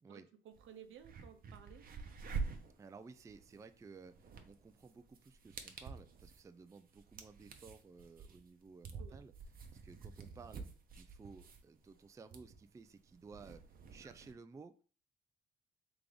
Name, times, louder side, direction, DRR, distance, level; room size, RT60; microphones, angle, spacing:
voice 1, 0.1-1.9 9.0-9.3, right 8 dB, 80° right, 7 dB, 0.8 m, -56 dB
sound 1, 0.5-0.6 1.0-14.3, right 4 dB, 45° right, 0.8 m, -48 dB
voice 2, 2.8-9.3 9.8-10.7 10.9-13.6 13.9-14.7, right 4 dB, 15° right, 10 dB, 0.3 m, -56 dB
3.7 x 3.5 x 3.3 m, 0.40 s
cardioid pair, 90°, 20 cm